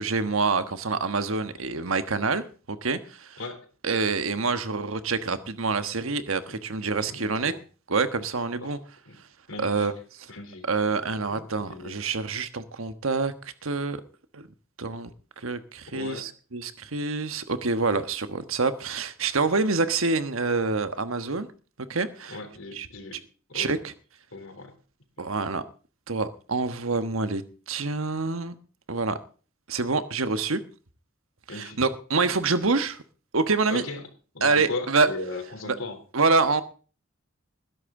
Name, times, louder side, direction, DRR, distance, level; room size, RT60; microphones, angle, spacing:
voice 1, 0.0-3.4 3.8-7.5 7.9-8.8 9.6-9.9 10.7-14.0 14.3-14.5 14.8-21.5 21.9-22.4 22.7-22.9 23.5-23.9 25.2-25.6 26.1-28.6 28.9-29.2 29.7-30.6 31.5-33.0 33.3-33.8 34.4-35.1 35.7-35.8 36.1-36.6, right 4 dB, 80° right, 10 dB, 1.3 m, -26 dB
voice 2, 7.0-7.6 8.6-8.8 9.1-9.2 9.5-9.9 10.3-10.6 11.3-11.9 15.9-16.3 22.3-23.2 23.5-23.7 24.3-24.7 31.5-31.8 33.7-34.0 34.3-36.0, left 2 dB, 75° left, 7 dB, 3.4 m, -37 dB
20.0 x 11.0 x 3.8 m, 0.37 s
head